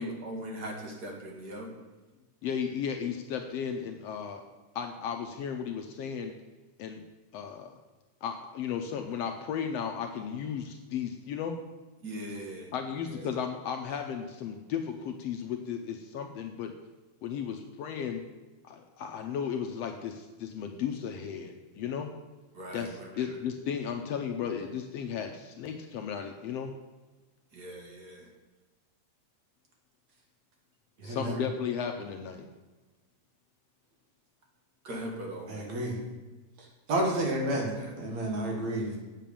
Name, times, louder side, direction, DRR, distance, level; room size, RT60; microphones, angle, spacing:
voice 1, 0.0-1.7 12.0-12.7 13.1-13.2 22.5-23.4 25.1-25.2 27.5-28.3 31.0-31.2 34.8-35.7 37.7-37.9, equal, 40° right, 0 dB, 2.0 m, -40 dB
voice 2, 2.4-4.4 4.8-6.3 6.8-7.0 7.3-7.8 8.2-11.6 12.7-16.7 17.2-18.2 18.6-22.1 22.7-26.7 31.0-32.5, left 7 dB, 75° left, 5 dB, 1.6 m, -35 dB
voice 3, 31.0-31.4 35.5-36.0 36.9-38.9, right 1 dB, 70° right, 0 dB, 3.2 m, -30 dB
8.2 x 7.6 x 6.9 m, 1.2 s
omnidirectional pair, 3.3 m